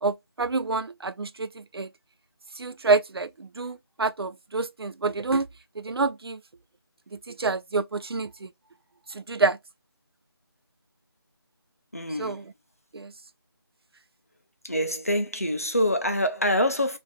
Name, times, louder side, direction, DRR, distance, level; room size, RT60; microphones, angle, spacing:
voice 1, 0.0-1.9 2.6-5.5 5.8-6.4 7.1-8.5 9.1-9.6 12.2-12.4 12.9-13.1, right 3 dB, 75° right, 0.4 m, -27 dB
voice 2, 11.9-12.4 14.6-17.0, left 1 dB, 35° left, 0.5 m, -25 dB
2.5 x 2.1 x 3.0 m
figure-of-eight pair, 180°, 13 cm